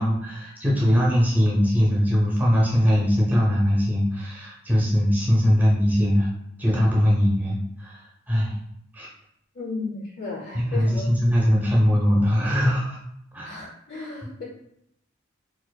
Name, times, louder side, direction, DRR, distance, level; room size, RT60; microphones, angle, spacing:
voice 1, 0.0-6.3 6.6-8.6 8.9-9.1 10.5-13.0 13.3-13.6, equal, 10° right, -5 dB, 0.6 m, -21 dB
voice 2, 9.5-11.1 13.4-14.4, left 3 dB, 55° left, -3 dB, 0.7 m, -34 dB
4.4 x 2.4 x 2.3 m, 0.74 s
head